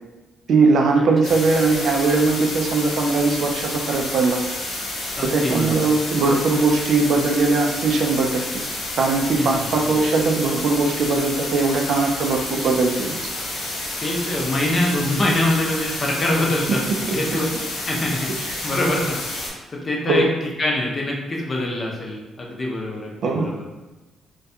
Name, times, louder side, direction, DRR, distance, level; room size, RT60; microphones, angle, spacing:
voice 1, 0.5-4.4 5.2-8.6 9.0-13.2 20.1-20.3 23.2-23.6, right 3 dB, 65° right, 2 dB, 0.3 m, -20 dB
sound 1, 1.2-19.5, left 2 dB, 80° left, 0.7 m, -30 dB
voice 2, 5.2-5.9 9.3-10.0 14.0-16.8 17.1-18.3 18.6-23.6, left 1 dB, 40° left, -1 dB, 0.6 m, -24 dB
2.3 x 2.1 x 2.7 m, 1.1 s
cardioid pair, 90°, 0 cm